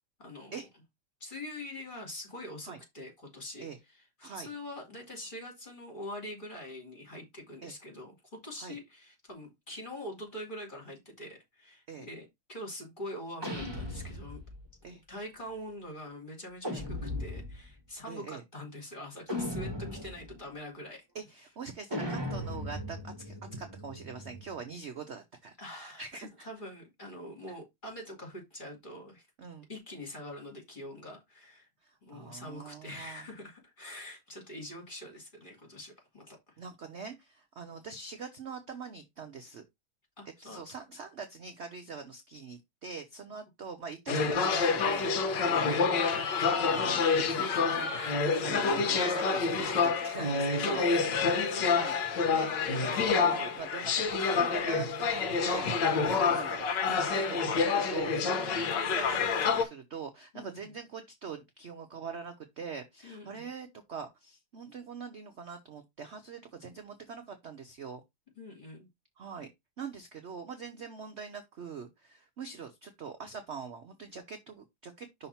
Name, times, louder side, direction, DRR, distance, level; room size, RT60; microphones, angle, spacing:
voice 1, 0.2-0.6 1.2-3.7 3.9-14.4 15.1-21.1 25.6-26.0 26.4-29.3 29.7-31.7 32.0-36.6 40.2-40.6 51.1-51.4 60.3-60.6 63.0-63.5 68.4-68.9, left 1 dB, 25° left, 3.0 m, -44 dB
sound 1, 13.4-14.7 16.6-17.7 19.3-20.3 21.9-24.6, left 1 dB, 15° right, 1.6 m, -37 dB
voice 2, 18.1-18.4 21.1-26.5 29.4-29.7 31.8-33.3 36.6-39.6 40.4-46.3 46.6-52.0 52.3-68.0 69.2-69.5 69.8-75.3, right 5 dB, 60° right, 0.7 m, -43 dB
sound 2, 44.1-59.6, left 5 dB, 65° left, 1.6 m, -28 dB
5.8 x 3.6 x 5.6 m
omnidirectional pair, 2.2 m